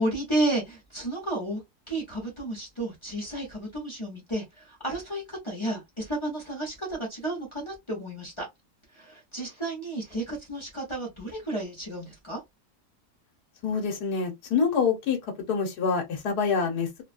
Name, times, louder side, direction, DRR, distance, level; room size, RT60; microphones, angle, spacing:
voice 1, 0.0-1.6 1.9-8.5 8.9-12.4, right 1 dB, 20° left, 0.9 m, -32 dB
voice 2, 13.6-15.2 15.5-17.0, left 5 dB, 80° left, 1.5 m, -26 dB
3.2 x 2.3 x 2.5 m
omnidirectional pair, 1.7 m